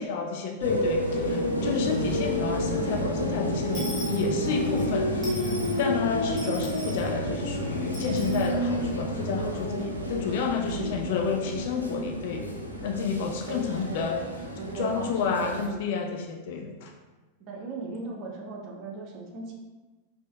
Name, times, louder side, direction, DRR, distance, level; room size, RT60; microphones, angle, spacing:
voice 1, 0.0-12.5 12.8-14.2 14.7-16.9, left 5 dB, 50° left, 2 dB, 0.3 m, -30 dB
sound 1, 0.6-15.7, equal, 90° right, 0.4 m, -30 dB
Dishes pots and pans / Coin (dropping), 3.7-4.9 5.2-5.8 6.4-7.1 7.9-8.5, equal, 5° right, 1.2 m, -40 dB
voice 2, 13.5-14.3 14.6-15.8 17.4-19.5, right 3 dB, 40° right, -1 dB, 0.6 m, -37 dB
3.4 x 2.6 x 2.2 m, 1.2 s
figure-of-eight pair, 90°, 0 cm